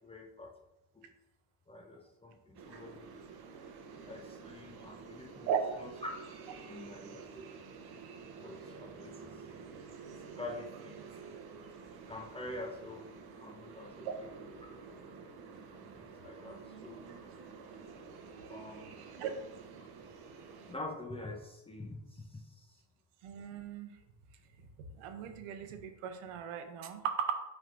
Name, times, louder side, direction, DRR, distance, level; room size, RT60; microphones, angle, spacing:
voice 1, 0.0-0.5 0.9-1.1 1.7-3.1 4.1-5.5 5.8-6.1 6.7-7.5 8.4-9.5 10.1-11.0 12.1-14.7 15.8-17.0 18.5-19.1 20.7-22.8, left 2 dB, 10° left, 1 dB, 0.5 m, -46 dB
sound 1, 2.5-20.8, right 5 dB, 50° right, 0.8 m, -50 dB
voice 2, 23.2-24.0 25.0-27.3, right 8 dB, 85° right, 7 dB, 0.8 m, -36 dB
5.7 x 3.5 x 2.5 m, 0.88 s
cardioid pair, 115°, 50 cm